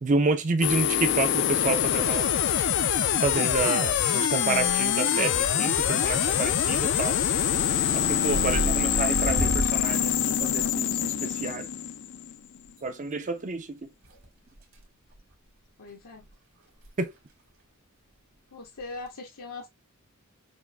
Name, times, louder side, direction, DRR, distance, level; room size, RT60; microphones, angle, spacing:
voice 1, 0.0-2.3 3.2-7.2 7.9-11.7 12.8-13.8 17.0-17.1, right 3 dB, 35° right, 0.5 m, -29 dB
sound 1, 0.6-12.6, left 9 dB, 55° left, 0.4 m, -25 dB
sound 2, 4.7-5.1 5.4-5.9 6.3-6.6 6.9-11.3 12.7-12.8 14.0-14.8 15.1-15.3 15.9-16.0 16.2-16.3 16.7-16.9 17.2-17.3 18.8-19.1, right 1 dB, 65° right, 1.8 m, -33 dB
voice 2, 15.8-16.3 18.5-19.7, left 3 dB, 85° left, 1.0 m, -40 dB
6.0 x 2.5 x 2.3 m
head